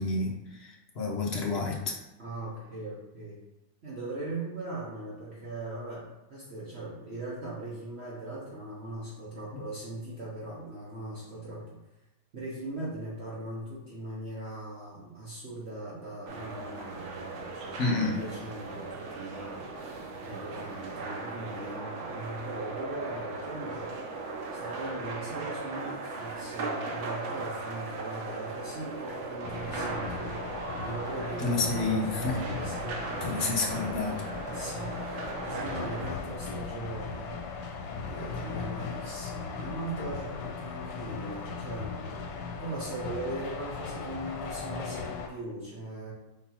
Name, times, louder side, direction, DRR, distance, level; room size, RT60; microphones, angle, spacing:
voice 1, 0.0-2.0 17.8-18.2 31.4-32.4 33.2-34.2, left 3 dB, 50° left, -2 dB, 0.8 m, -29 dB
voice 2, 2.2-3.4 3.8-11.8 12.3-19.7 20.2-23.9 24.5-30.4 30.8-33.4 34.5-37.4 37.9-42.1 42.6-46.1, right 2 dB, 45° right, -6 dB, 0.9 m, -39 dB
sound 1, 16.3-36.1, right 3 dB, 75° right, 0.6 m, -38 dB
sound 2, 29.4-45.3, left 5 dB, 90° left, 1.3 m, -38 dB
4.0 x 3.8 x 2.9 m, 0.97 s
omnidirectional pair, 2.0 m